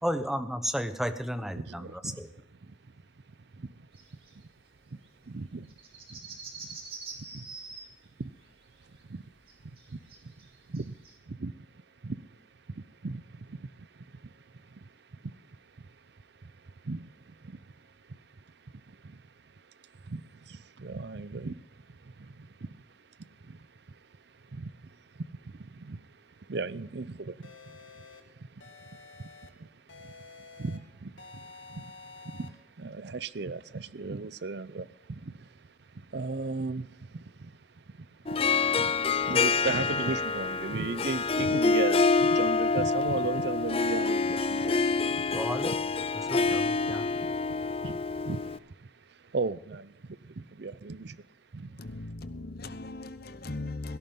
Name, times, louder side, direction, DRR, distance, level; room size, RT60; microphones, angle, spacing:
voice 1, 0.0-2.3 45.3-45.8 46.3-47.1, equal, ahead, 0.9 m, -33 dB
voice 2, 1.6-2.3 2.6-2.7 3.3-3.9 4.3-4.5 4.9-5.7 6.1-6.4 6.7-6.8 7.1-7.5 8.2-8.3 8.8-9.2 9.6-11.0 11.3-12.4 12.7-45.4 46.2-46.6 46.9-47.3 47.6-51.3 51.5-51.8, right 3 dB, 60° right, 0.6 m, -38 dB
sound 1, 3.9-4.4 4.7-4.8 5.0-5.1 5.4-11.2, right 4 dB, 30° right, 2.4 m, -45 dB
sound 2, 27.4-28.2 28.6-29.5 29.9-30.8 31.2-32.5, left 4 dB, 80° left, 1.9 m, -49 dB
Harp, 38.3-48.6, left 4 dB, 30° left, 0.5 m, -27 dB
voice 3, 51.8-54.0, left 2 dB, 50° left, 0.9 m, -38 dB
17.0 x 13.5 x 3.7 m
head